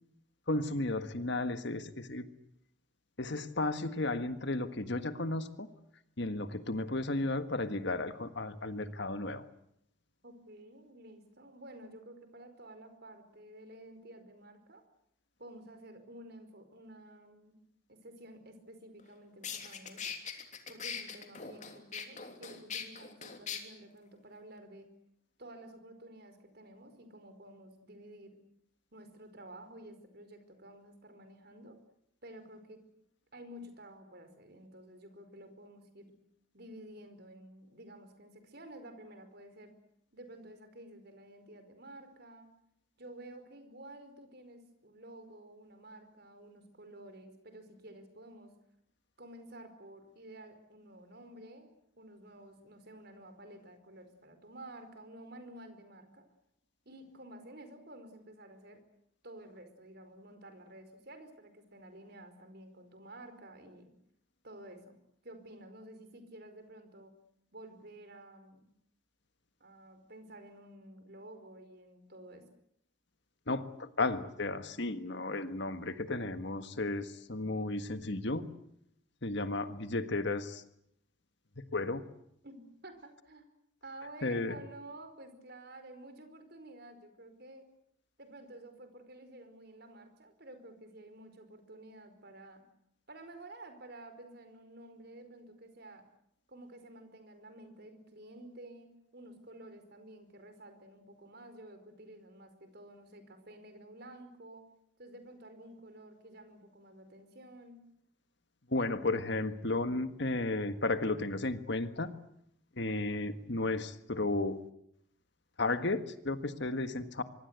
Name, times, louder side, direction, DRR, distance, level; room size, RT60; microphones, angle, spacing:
voice 1, 0.5-2.3 3.2-5.7 6.2-9.4 73.5-78.5 79.2-80.6 81.7-82.0 84.2-84.6 108.7-112.1 112.8-114.6 115.6-117.2, left 2 dB, 60° left, 11 dB, 1.6 m, -33 dB
voice 2, 10.2-14.8 15.4-17.6 17.9-20.1 20.7-24.9 25.4-28.4 28.9-31.8 32.2-32.8 33.3-36.2 36.5-39.8 40.1-42.5 43.0-48.6 49.2-56.2 56.8-58.8 59.2-63.9 64.4-64.9 65.2-67.1 67.5-68.7 69.6-72.5 82.4-83.5 83.8-87.7 88.2-92.6 93.1-96.1 96.5-104.6 105.0-107.8, right 1 dB, 50° right, 9 dB, 4.9 m, -51 dB
sound 1, 19.0-19.1 19.4-23.6, left 7 dB, 35° left, 3.3 m, -41 dB
24.5 x 24.0 x 8.2 m, 0.75 s
head